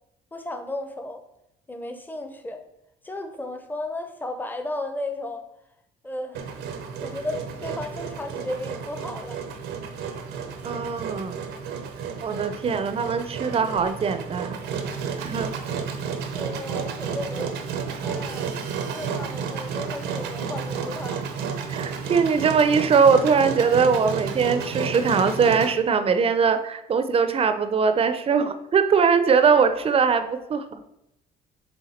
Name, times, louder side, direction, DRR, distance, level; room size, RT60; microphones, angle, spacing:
voice 1, 0.3-1.2 1.7-2.6 3.0-5.5 6.0-6.5 7.0-9.4 16.3-17.6 18.0-18.6 18.9-21.3, left 1 dB, 10° left, 7 dB, 0.7 m, -34 dB
Engine, 6.3-25.7, right 6 dB, 85° right, 0.8 m, -32 dB
voice 2, 10.6-11.4 12.2-14.6 15.2-15.5 21.7-30.6, right 5 dB, 35° right, 10 dB, 0.6 m, -21 dB
7.1 x 3.5 x 4.3 m, 0.83 s
cardioid pair, 110°, 17 cm